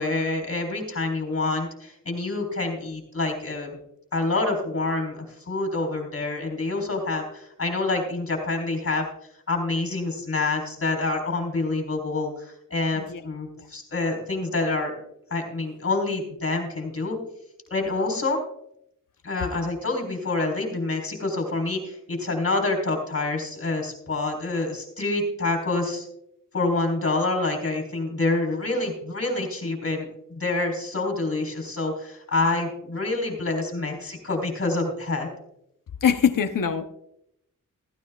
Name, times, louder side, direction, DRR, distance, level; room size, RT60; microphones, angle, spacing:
voice 1, 0.0-3.8 4.1-9.1 9.5-14.9 15.3-17.2 17.7-18.4 19.2-26.1 26.5-35.3, left 2 dB, 45° left, 2 dB, 4.0 m, -27 dB
voice 2, 36.0-36.8, left 7 dB, 70° left, 6 dB, 0.9 m, -22 dB
15.5 x 15.0 x 2.4 m, 0.77 s
wide cardioid pair, 115°, 33 cm